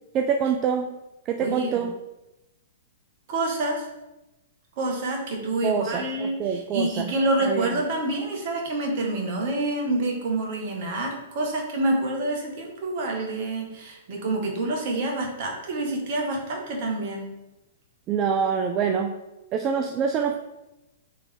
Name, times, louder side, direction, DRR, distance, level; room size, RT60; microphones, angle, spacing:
voice 1, 0.1-0.9 1.3-1.9 5.6-7.1 7.4-7.7 18.1-19.1 19.5-20.4, right 6 dB, 30° right, 5 dB, 0.3 m, -25 dB
voice 2, 1.4-1.9 3.3-3.8 4.8-17.3, right 2 dB, 50° right, 0 dB, 1.1 m, -27 dB
3.6 x 3.3 x 3.4 m, 0.98 s
figure-of-eight pair, 110°, 0 cm